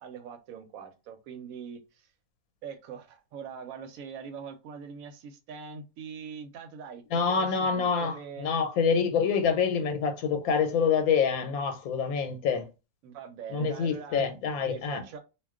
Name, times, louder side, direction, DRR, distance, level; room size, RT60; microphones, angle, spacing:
voice 1, 0.0-2.1 2.6-8.5 13.0-14.2 14.6-15.2, right 6 dB, 75° right, 1.0 m, -43 dB
voice 2, 7.1-12.7 13.5-15.0, left 6 dB, 85° left, 1.1 m, -26 dB
2.4 x 2.2 x 3.5 m
omnidirectional pair, 1.5 m